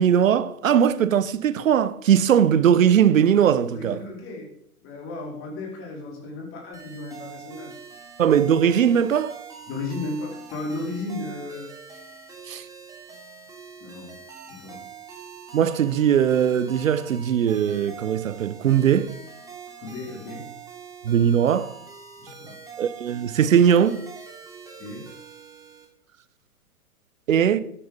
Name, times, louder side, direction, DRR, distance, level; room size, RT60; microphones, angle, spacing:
voice 1, 0.0-4.0 8.2-9.4 12.5-12.6 15.5-19.2 21.0-21.7 22.8-24.0 27.3-27.6, right 8 dB, 60° right, 1.1 m, -20 dB
voice 2, 3.7-4.5 4.8-7.8 9.7-11.7 13.8-14.2 14.5-14.8 19.8-20.5 22.2-22.6 24.8-25.1, left 2 dB, 30° left, 4.4 m, -34 dB
sound 1, 6.7-25.9, right 6 dB, 5° right, 3.1 m, -44 dB
13.0 x 10.5 x 5.5 m
figure-of-eight pair, 115°, 45 cm